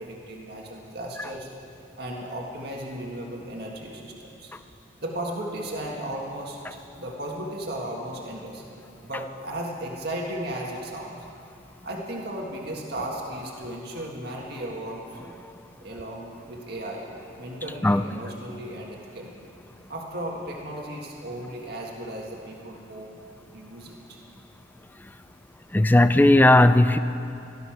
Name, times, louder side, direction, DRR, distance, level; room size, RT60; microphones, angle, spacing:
voice 1, 0.0-1.5 2.0-4.5 5.0-8.6 9.0-11.2 11.8-15.2 15.8-17.1 17.4-19.4 19.9-23.2 23.5-24.2, right 1 dB, 60° right, -2 dB, 1.8 m, -35 dB
voice 2, 25.7-27.0, left 1 dB, 10° left, 11 dB, 0.3 m, -16 dB
17.5 x 12.5 x 6.1 m, 2.7 s
head